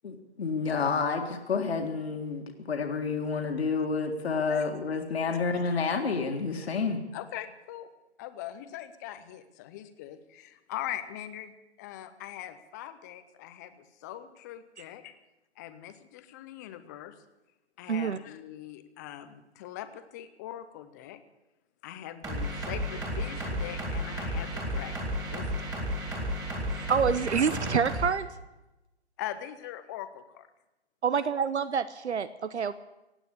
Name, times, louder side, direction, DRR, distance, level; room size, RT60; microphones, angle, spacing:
voice 1, 0.0-7.0, left 4 dB, 65° left, 4 dB, 2.0 m, -29 dB
voice 2, 7.1-7.9 8.2-11.5 11.8-13.7 14.0-15.1 15.6-17.1 17.8-21.2 21.8-25.0 25.3-25.9 29.2-30.5, left 12 dB, 15° left, 11 dB, 0.6 m, -41 dB
voice 3, 17.9-18.2 26.8-28.3 31.0-32.7, right 6 dB, 80° right, 15 dB, 0.8 m, -27 dB
sound 1, 22.2-28.1, equal, 10° right, 3.2 m, -33 dB
17.0 x 9.0 x 8.4 m, 0.99 s
figure-of-eight pair, 140°, 34 cm